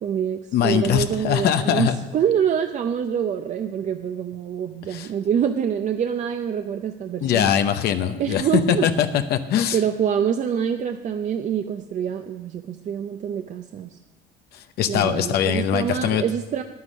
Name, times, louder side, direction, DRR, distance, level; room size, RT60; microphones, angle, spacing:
voice 1, 0.0-7.5 8.2-8.9 9.7-14.0 14.9-16.6, right 8 dB, 45° right, 7 dB, 0.6 m, -25 dB
voice 2, 0.5-1.9 4.9-5.1 7.2-9.8 14.8-16.2, left 9 dB, 75° left, 8 dB, 0.7 m, -22 dB
9.8 x 9.5 x 6.2 m, 1.1 s
cardioid pair, 110°, 17 cm